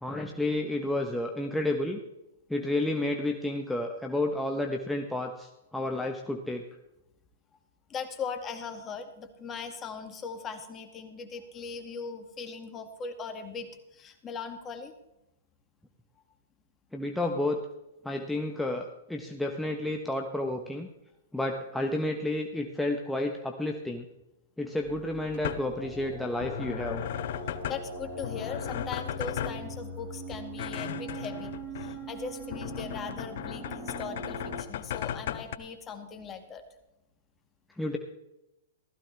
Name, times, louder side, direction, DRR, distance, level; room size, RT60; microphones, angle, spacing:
voice 1, 0.0-2.0 2.5-6.6 16.9-17.7 18.0-20.9 21.3-24.1 24.6-27.0 37.8-38.0, left 1 dB, 5° left, 2 dB, 1.1 m, -31 dB
voice 2, 7.9-14.9 27.7-36.6, left 5 dB, 25° left, 6 dB, 2.2 m, -39 dB
sound 1, 24.9-35.6, left 10 dB, 60° left, 0.8 m, -37 dB
sound 2, 25.3-34.6, right 3 dB, 30° right, 6.7 m, -41 dB
16.0 x 14.5 x 3.5 m, 0.90 s
hypercardioid pair, 120°, 0 cm